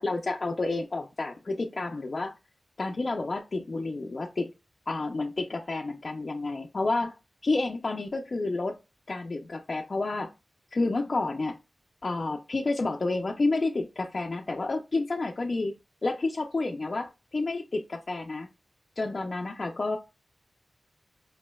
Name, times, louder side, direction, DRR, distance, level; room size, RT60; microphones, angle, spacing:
voice 1, 0.0-2.3 2.8-4.5 4.9-7.1 7.4-8.8 9.1-10.3 10.7-11.6 12.0-15.7 16.0-18.5 19.0-20.0, left 3 dB, 55° left, 1 dB, 0.5 m, -30 dB
4.8 x 3.0 x 2.3 m, 0.27 s
wide cardioid pair, 65°, 0 cm